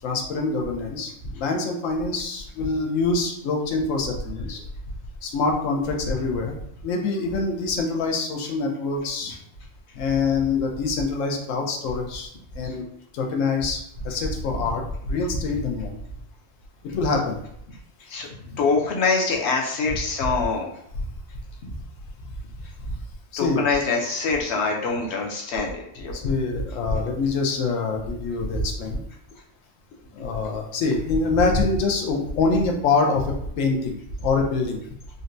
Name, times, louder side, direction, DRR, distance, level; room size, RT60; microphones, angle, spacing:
voice 1, 0.0-4.6 5.2-6.5 6.8-9.4 9.9-12.3 12.5-12.8 13.1-16.0 16.9-17.4 20.2-20.3 22.8-23.0 23.3-23.6 26.1-29.0 30.1-34.8, left 3 dB, 90° left, 1 dB, 1.0 m, -25 dB
voice 2, 18.5-20.7 23.4-26.1, left 4 dB, 65° left, 0 dB, 0.9 m, -24 dB
3.9 x 2.2 x 2.6 m, 0.73 s
omnidirectional pair, 1.3 m